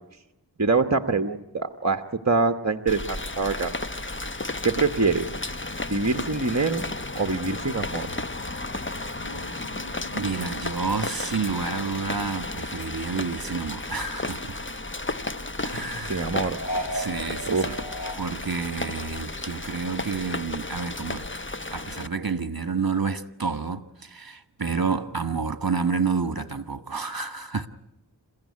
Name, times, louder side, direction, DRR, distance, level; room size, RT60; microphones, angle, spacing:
voice 1, 0.6-3.7 4.6-5.3 5.9-6.8 7.1-8.1 16.1-16.9 17.5-17.8, right 3 dB, 40° right, 1.2 m, -25 dB
Rain, 2.9-22.1, left 2 dB, 25° left, 1.1 m, -33 dB
sound 1, 9.2-13.1 13.4-15.0 16.5-18.2, equal, 50° left, 3.8 m, -38 dB
voice 2, 10.1-14.6 15.6-16.3 16.9-17.7 18.1-21.2 21.7-27.7, right 5 dB, 55° right, 1.5 m, -29 dB
29.0 x 16.0 x 9.7 m
wide cardioid pair, 45°, 43 cm